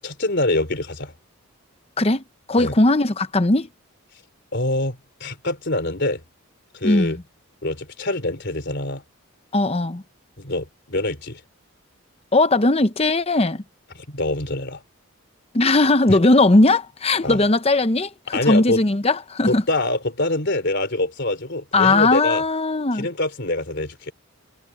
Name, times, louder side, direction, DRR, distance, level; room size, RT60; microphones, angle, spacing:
voice 1, 0.0-1.1 2.6-2.7 4.5-6.2 6.7-7.2 7.6-9.0 10.4-11.4 13.9-14.8 16.1-16.2 17.2-17.4 18.3-18.8 19.4-22.4 22.9-24.1, left 2 dB, 50° left, 3.7 m, -25 dB
voice 2, 2.0-3.7 6.8-7.2 9.5-10.0 12.3-13.6 15.5-19.6 21.7-23.1, left 2 dB, 25° left, 0.8 m, -18 dB
head